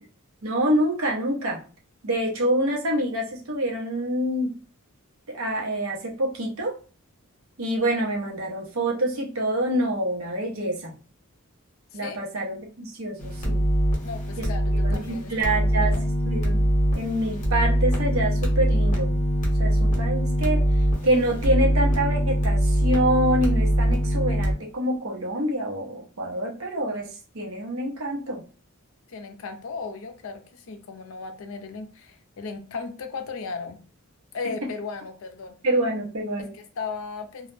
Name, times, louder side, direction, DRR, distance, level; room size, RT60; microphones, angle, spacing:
voice 1, 0.4-1.6 2.0-4.6 5.3-6.8 7.6-10.9 11.9-13.6 14.4-14.5 14.8-15.9 16.2-16.6 16.9-19.2 19.6-20.6 21.0-28.4 34.6-34.7 35.6-36.5, right 1 dB, 70° right, -1 dB, 0.8 m, -26 dB
voice 2, 11.9-12.2 14.0-15.3 15.7-16.0 29.1-33.8 34.3-35.6 36.4-37.5, left 4 dB, 65° left, 7 dB, 0.5 m, -36 dB
sound 1, 13.2-24.5, equal, 35° left, 0.9 m, -23 dB
2.3 x 2.0 x 3.1 m, 0.36 s
head